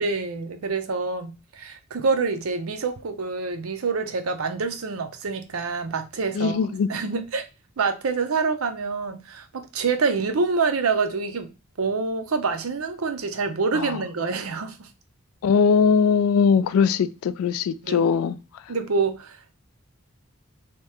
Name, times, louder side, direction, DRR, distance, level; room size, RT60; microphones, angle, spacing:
voice 1, 0.0-6.6 6.9-7.5 7.8-11.5 11.8-14.9 17.8-18.0 18.7-19.5, right 4 dB, 80° right, 0.6 m, -26 dB
voice 2, 6.3-6.9 13.7-14.0 15.4-18.4, left 6 dB, 85° left, 0.3 m, -20 dB
2.9 x 2.8 x 3.4 m
head